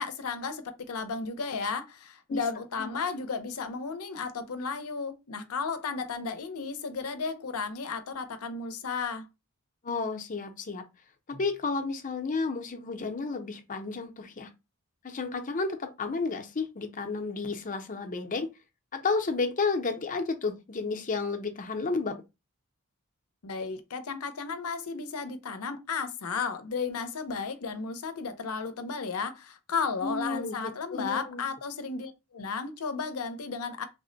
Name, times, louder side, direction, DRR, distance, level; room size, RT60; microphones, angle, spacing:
voice 1, 0.0-9.3 23.4-33.8, left 5 dB, 80° left, 0.6 m, -34 dB
voice 2, 9.8-10.8 11.3-14.5 15.0-18.5 18.9-22.2 30.0-30.6 30.9-31.5, left 4 dB, 35° left, 0.6 m, -31 dB
3.4 x 2.1 x 3.8 m
head